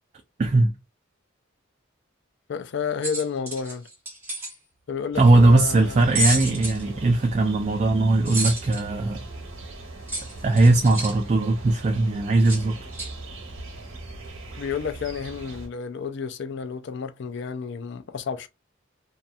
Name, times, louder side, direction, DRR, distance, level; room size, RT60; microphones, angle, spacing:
voice 1, 0.4-0.7 5.2-9.2 10.4-12.8, right 2 dB, 35° right, 0.3 m, -19 dB
voice 2, 2.5-3.9 4.9-6.0 14.6-18.5, left 6 dB, 60° left, 0.4 m, -31 dB
sound 1, 3.0-4.5 6.2-6.8 8.3-8.8 10.1-11.2 12.5-12.6 12.9-13.1, right 1 dB, 10° right, 1.1 m, -29 dB
sound 2, 5.1-15.7, right 2 dB, 80° right, 0.9 m, -39 dB
2.7 x 2.2 x 2.4 m
head